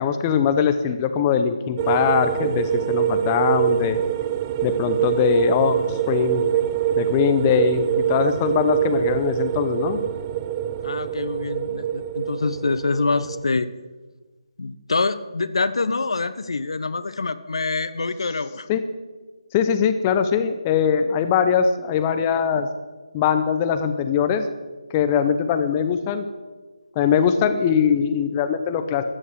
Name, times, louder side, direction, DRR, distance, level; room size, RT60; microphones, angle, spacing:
voice 1, 0.0-4.0 4.6-6.4 7.0-10.0 18.7-18.8 19.5-22.7 23.1-24.4 24.9-26.2 27.0-29.0, left 7 dB, 20° left, 9 dB, 0.8 m, -21 dB
sound 1, 1.8-13.4, right 11 dB, 20° right, 0.4 m, -24 dB
voice 2, 10.8-13.7 14.6-18.7, left 3 dB, 55° left, 13 dB, 0.8 m, -25 dB
13.5 x 9.2 x 7.7 m, 1.3 s
figure-of-eight pair, 150°, 3 cm